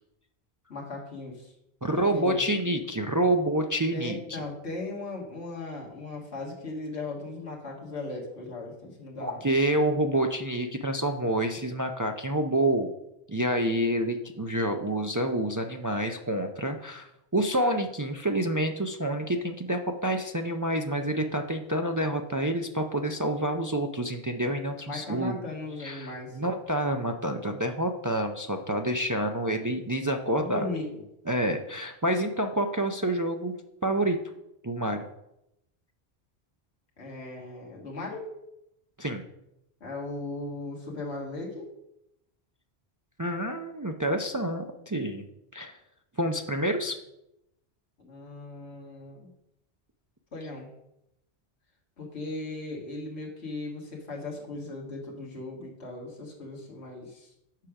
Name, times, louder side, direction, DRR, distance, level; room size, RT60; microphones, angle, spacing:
voice 1, 0.7-1.5 2.1-2.4 3.9-9.4 24.9-26.4 30.4-31.0 37.0-38.3 39.8-41.7 48.0-49.3 50.3-50.7 52.0-57.3, left 2 dB, 75° left, -3 dB, 1.9 m, -37 dB
voice 2, 1.8-4.4 9.2-12.9 13.3-25.4 25.8-30.7 31.3-33.6 33.8-34.2 34.6-35.0 39.0-39.2 43.2-45.2 45.5-45.8 46.2-47.0, right 1 dB, 30° right, 4 dB, 0.3 m, -28 dB
7.4 x 5.0 x 5.9 m, 0.84 s
omnidirectional pair, 1.1 m